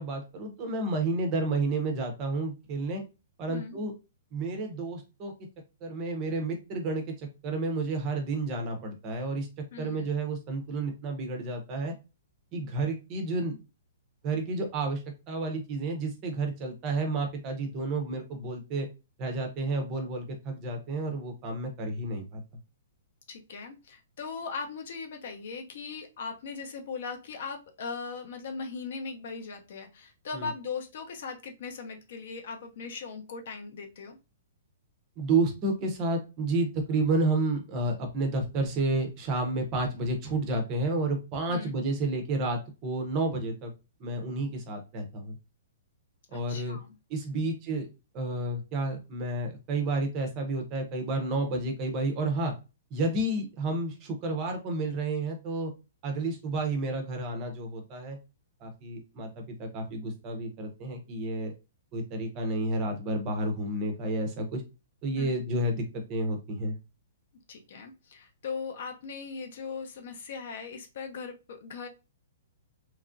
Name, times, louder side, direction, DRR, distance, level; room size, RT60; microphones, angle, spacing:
voice 1, 0.0-3.0 3.4-3.9 4.3-5.3 5.8-7.1 7.4-9.5 9.8-11.9 12.5-13.5 14.2-18.9 19.2-22.4 30.3-30.5 35.2-43.7 44.0-45.4 46.3-46.8 47.1-47.9 48.1-52.5 52.9-55.7 56.0-58.2 58.6-61.5 61.9-64.6 65.0-66.8, right 2 dB, 20° right, 3 dB, 0.5 m, -30 dB
voice 2, 3.5-3.8 9.7-10.1 23.3-34.2 41.5-41.8 46.3-47.0 47.3-47.5 65.2-65.3 67.5-71.9, left 5 dB, 50° left, 5 dB, 0.6 m, -39 dB
2.9 x 2.4 x 2.5 m, 0.28 s
hypercardioid pair, 175°, 0 cm